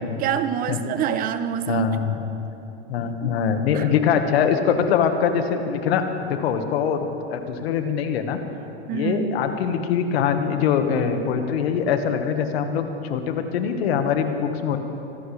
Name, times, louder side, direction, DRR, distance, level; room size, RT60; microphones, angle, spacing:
voice 1, 0.0-1.9 3.2-3.4 3.7-3.9 8.9-9.3, right 8 dB, 25° right, 11 dB, 0.8 m, -26 dB
voice 2, 1.7-2.3 2.9-8.4 8.9-14.8, left 7 dB, 65° left, 6 dB, 1.6 m, -23 dB
25.0 x 14.0 x 3.4 m, 2.9 s
supercardioid pair, 135°, 33 cm